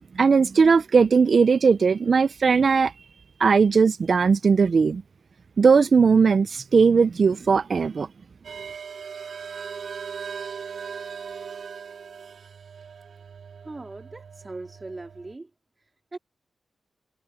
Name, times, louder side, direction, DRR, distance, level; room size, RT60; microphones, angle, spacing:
voice 1, 0.1-2.9 3.4-5.0 5.6-8.1, right 5 dB, 60° right, 0.5 m, -18 dB
sound 1, 8.4-15.3, right 6 dB, 80° right, 4.2 m, -39 dB
voice 2, 13.6-15.5 16.1-16.2, right 2 dB, 30° right, 3.6 m, -39 dB
cardioid pair, 80°, 0 cm